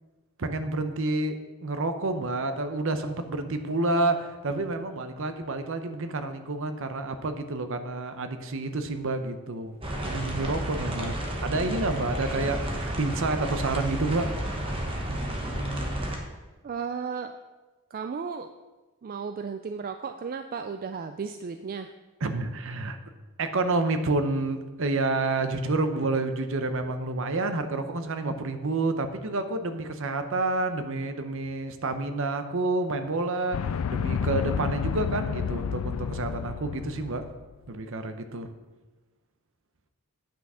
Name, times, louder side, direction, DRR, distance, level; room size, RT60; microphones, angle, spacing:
voice 1, 0.4-1.3 1.6-9.8 10.0-14.3 22.2-23.0 23.4-37.3 37.7-38.5, right 2 dB, 60° right, 8 dB, 0.7 m, -29 dB
sound 1, 9.8-16.2, right 1 dB, 25° right, 1.2 m, -31 dB
voice 2, 16.6-17.3 17.9-18.5 19.0-21.9, right 5 dB, 40° right, 7 dB, 0.3 m, -34 dB
sound 2, 33.5-37.4, left 7 dB, 70° left, 0.3 m, -30 dB
8.8 x 5.9 x 5.5 m, 1.2 s
head